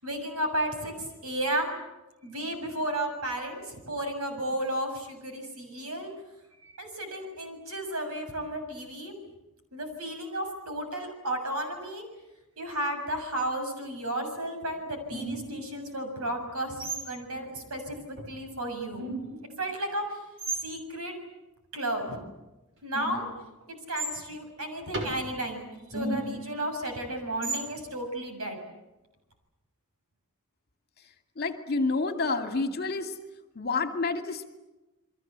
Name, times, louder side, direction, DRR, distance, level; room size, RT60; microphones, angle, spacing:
voice 1, 0.0-1.7 2.2-6.1 6.6-9.1 9.7-12.0 12.6-19.0 19.6-20.2 20.6-21.2 21.7-22.2 22.8-23.3 23.9-28.6, right 1 dB, 75° right, 5 dB, 7.1 m, -33 dB
sound 1, 15.1-15.7 16.8-17.2 18.2-18.3 18.9-19.5 20.4-20.7 22.9-23.4 24.0-24.2 24.9-25.2 25.9-26.4 27.4-27.7, right 2 dB, 55° right, 6.1 m, -33 dB
voice 2, 31.4-33.1 33.6-34.6, left 3 dB, 45° left, 6 dB, 2.4 m, -29 dB
30.0 x 22.5 x 8.2 m, 1.0 s
head